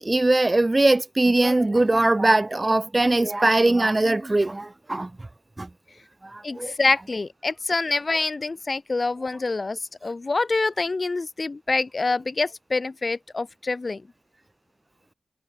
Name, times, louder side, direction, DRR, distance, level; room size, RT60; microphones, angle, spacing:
voice 1, 0.0-5.1 5.6-5.7 6.3-6.7, right 2 dB, 30° right, 0.9 m, -21 dB
voice 2, 6.4-14.0, left 3 dB, 45° left, 0.9 m, -26 dB
cardioid pair, 45°, 0 cm